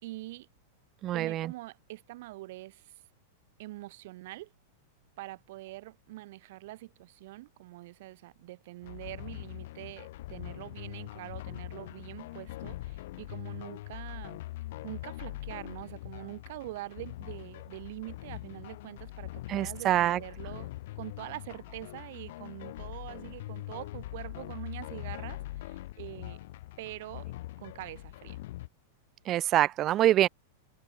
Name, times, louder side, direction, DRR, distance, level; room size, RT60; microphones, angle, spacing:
voice 1, 0.0-0.5 1.1-2.9 3.6-4.5 5.2-14.4 14.8-20.7 21.0-26.4 26.8-27.3 27.6-28.4, right 18 dB, 65° right, 4.3 m, -44 dB
voice 2, 1.0-1.5 19.5-20.2 29.3-30.3, right 13 dB, 35° right, 0.4 m, -25 dB
sound 1, 8.8-28.7, left 16 dB, 65° left, 3.5 m, -42 dB
hypercardioid pair, 120°, 0 cm